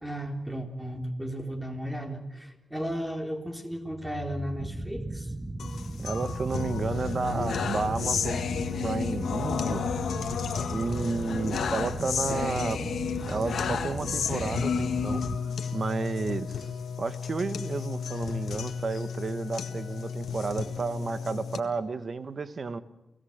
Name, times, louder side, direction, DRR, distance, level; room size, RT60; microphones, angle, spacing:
voice 1, 0.0-5.3, equal, 10° right, 3.9 m, -34 dB
sound 1, 4.6-15.4, right 2 dB, 25° right, 1.2 m, -36 dB
sound 2, 5.6-21.6, left 7 dB, 85° left, 1.7 m, -32 dB
voice 2, 6.0-8.5 8.8-9.8 10.7-12.8 13.3-15.2 15.7-16.7 17.0-22.8, right 4 dB, 55° right, 1.5 m, -32 dB
29.5 x 17.0 x 8.1 m
cardioid pair, 60°, 0 cm